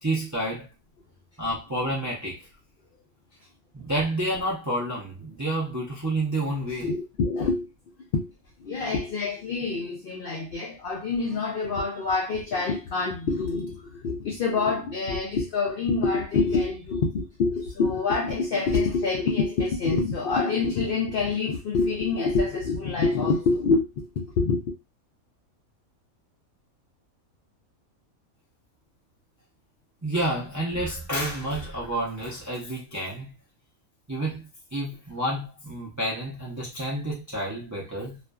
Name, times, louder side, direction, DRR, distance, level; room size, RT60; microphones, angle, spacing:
voice 1, 0.0-0.7 1.4-2.4 3.7-6.9 30.0-33.3 34.1-38.2, right 1 dB, 25° right, 0.3 m, -29 dB
voice 2, 6.8-7.7 8.1-8.3 8.6-24.6, left 4 dB, 90° left, 0.4 m, -26 dB
2.5 x 2.4 x 2.2 m
omnidirectional pair, 1.5 m